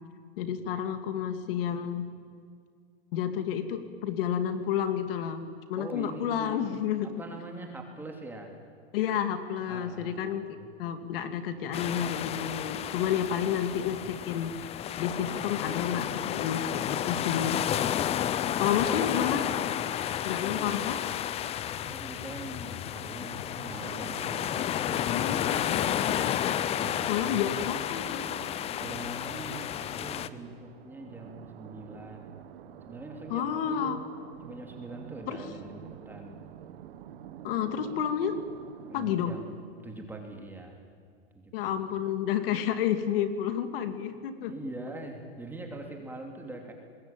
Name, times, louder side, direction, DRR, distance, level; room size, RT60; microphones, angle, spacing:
voice 1, 0.4-2.1 3.1-7.1 8.9-10.5 10.8-14.7 15.0-17.6 18.6-19.5 20.2-21.0 25.1-25.7 27.1-28.2 33.3-34.0 35.3-35.4 37.4-38.4 38.9-39.3 41.5-44.5, left 9 dB, 60° left, 9 dB, 2.5 m, -30 dB
voice 2, 5.7-6.6 7.0-8.5 9.7-10.7 18.2-19.1 20.4-20.7 21.8-25.8 26.6-27.5 28.8-32.4 32.8-34.1 34.4-36.4 38.9-40.8 41.3-41.8 43.9-44.0 44.4-46.7, right 2 dB, 5° right, 2 dB, 3.0 m, -43 dB
sound 1, 11.7-30.3, left 10 dB, 20° left, 0.6 m, -31 dB
sound 2, 23.6-39.3, right 10 dB, 70° right, 1.8 m, -48 dB
26.0 x 21.0 x 9.1 m, 2.1 s
supercardioid pair, 150°, 32 cm